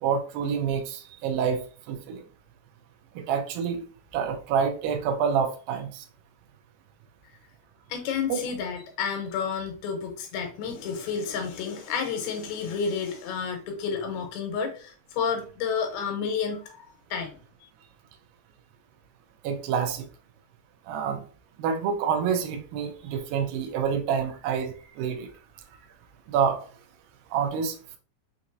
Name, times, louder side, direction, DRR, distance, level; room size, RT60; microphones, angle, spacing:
voice 1, 0.0-2.2 3.2-3.8 4.1-6.1 8.3-8.4 19.4-20.1 20.9-21.2 21.6-25.3 26.3-26.7 27.3-28.0, right 7 dB, 80° right, 4 dB, 2.4 m, -27 dB
voice 2, 7.9-16.8 17.1-17.4, left 6 dB, 90° left, 4 dB, 2.9 m, -30 dB
6.2 x 2.9 x 2.6 m, 0.39 s
omnidirectional pair, 4.3 m